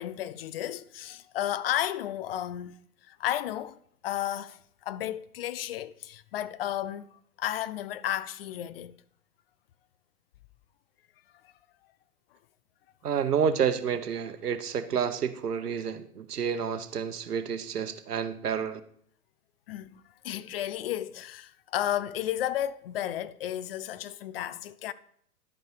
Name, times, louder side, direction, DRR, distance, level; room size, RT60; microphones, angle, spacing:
voice 1, 0.0-2.8 3.1-7.1 7.4-8.9 11.4-11.5 19.7-24.9, left 12 dB, 40° left, 0.5 m, -33 dB
voice 2, 13.0-18.8, right 7 dB, 80° right, 1.0 m, -29 dB
11.0 x 5.3 x 4.9 m
hypercardioid pair, 115°, 46 cm